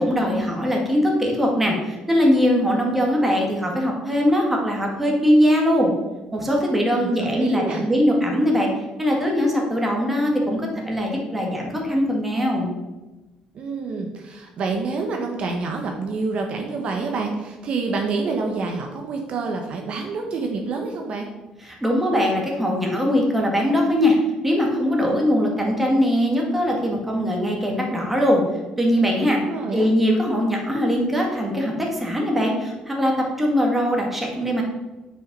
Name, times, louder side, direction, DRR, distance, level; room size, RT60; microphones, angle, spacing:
voice 1, 0.0-5.9 6.3-8.7 9.0-12.7 21.6-24.2 24.4-28.4 28.8-29.4 29.7-34.6, equal, 5° right, -1 dB, 1.8 m, -21 dB
voice 2, 6.8-7.9 13.5-21.3 29.2-29.9, right 4 dB, 50° right, 3 dB, 1.1 m, -27 dB
8.7 x 5.6 x 5.3 m, 1.1 s
cardioid pair, 155°, 2 cm